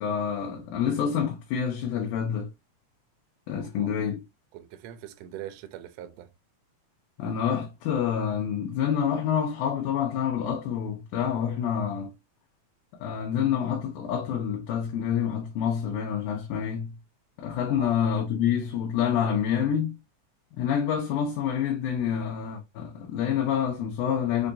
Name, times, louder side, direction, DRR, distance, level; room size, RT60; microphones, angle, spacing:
voice 1, 0.0-2.5 3.5-4.2 7.2-12.1 13.0-16.9 17.4-20.0 20.6-24.5, left 8 dB, 90° left, 2.2 m, -27 dB
voice 2, 4.5-6.3 17.7-18.0, right 12 dB, 85° right, 1.4 m, -42 dB
5.4 x 2.2 x 2.5 m
omnidirectional pair, 3.5 m